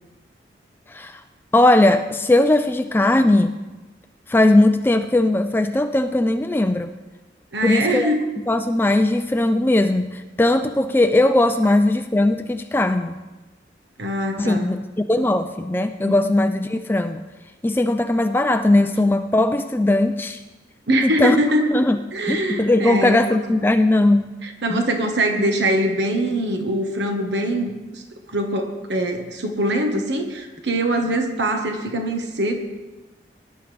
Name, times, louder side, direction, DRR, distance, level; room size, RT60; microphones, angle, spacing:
voice 1, 0.9-1.2 1.5-3.5 4.3-6.9 7.6-13.2 14.4-17.2 17.6-20.4 21.0-21.4 21.7-22.0 22.3-24.4 24.7-24.9, left 1 dB, 10° left, 8 dB, 0.3 m, -19 dB
voice 2, 7.5-8.2 14.0-14.7 16.1-16.2 20.9-21.7 22.1-23.2 24.4-28.0 28.3-32.7, right 1 dB, 75° right, 4 dB, 1.3 m, -23 dB
19.5 x 11.0 x 3.4 m, 1.1 s
head